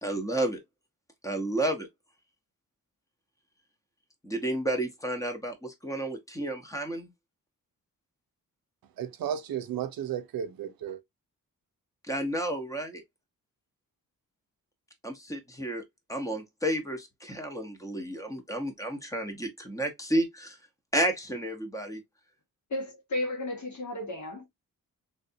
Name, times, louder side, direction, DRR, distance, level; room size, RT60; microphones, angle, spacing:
voice 1, 0.0-0.6 1.2-1.9 4.2-7.1 12.1-13.0 15.0-15.8 16.1-20.6 20.9-22.0, right 1 dB, 10° left, 0.9 m, -31 dB
voice 2, 9.0-11.0, right 9 dB, 85° right, 0.6 m, -33 dB
voice 3, 22.7-24.5, left 1 dB, 55° left, 1.5 m, -33 dB
3.3 x 2.6 x 2.6 m
wide cardioid pair, 120°, 34 cm